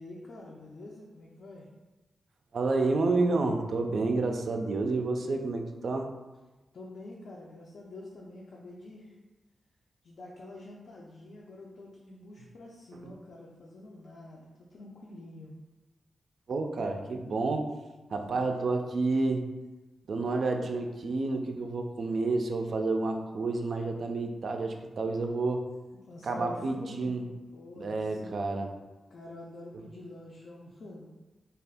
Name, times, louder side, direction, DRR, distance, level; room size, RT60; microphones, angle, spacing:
voice 1, 0.0-1.7 6.7-9.2 10.0-15.5 25.9-27.2 27.5-28.4 29.1-31.1, left 2 dB, 60° left, -4 dB, 0.4 m, -46 dB
voice 2, 2.5-6.1 13.0-13.1 16.5-17.7 18.1-19.5 20.1-25.7 26.2-27.2 27.8-28.7, right 3 dB, 55° right, 4 dB, 0.3 m, -29 dB
2.6 x 2.3 x 3.4 m, 1.1 s
wide cardioid pair, 145°, 0 cm